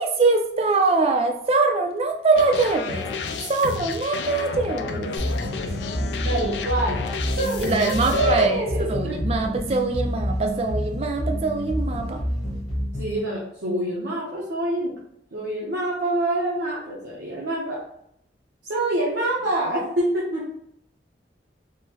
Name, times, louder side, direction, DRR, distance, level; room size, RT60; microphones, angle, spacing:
voice 1, 0.0-3.1 3.5-5.1 7.6-8.6 8.9-12.2, right 3 dB, 35° right, 5 dB, 0.3 m, -23 dB
sound 1, 2.3-8.5, left 4 dB, 80° left, 0.3 m, -31 dB
sound 2, 5.2-13.2, equal, 20° left, 1.0 m, -28 dB
voice 2, 6.2-6.9 7.2-9.2 13.0-14.9 15.3-17.8 18.7-20.4, right 1 dB, 80° right, -6 dB, 0.7 m, -26 dB
3.6 x 2.1 x 2.8 m, 0.74 s
head